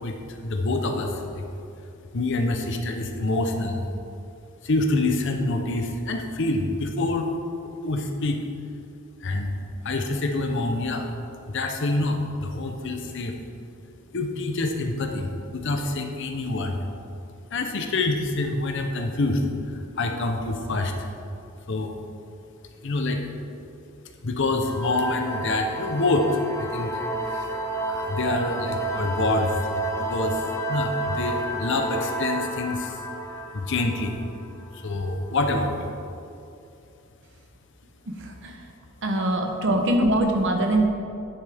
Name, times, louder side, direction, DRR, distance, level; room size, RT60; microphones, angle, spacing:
voice 1, 0.0-1.4 2.1-3.9 4.6-7.3 7.8-8.4 9.2-11.1 11.5-13.3 14.1-16.8 17.5-19.4 19.7-20.9 21.7-21.9 22.8-23.2 24.2-26.3 26.6-27.0 27.3-27.5 27.8-30.4 30.7-33.0 33.5-34.2 34.8-35.9, left 2 dB, 55° left, 4 dB, 0.7 m, -26 dB
sound 1, 24.6-35.0, right 2 dB, 15° left, 0.5 m, -31 dB
voice 2, 38.2-38.6 39.0-40.9, right 1 dB, 55° right, 3 dB, 0.8 m, -22 dB
9.6 x 5.8 x 3.5 m, 2.7 s
head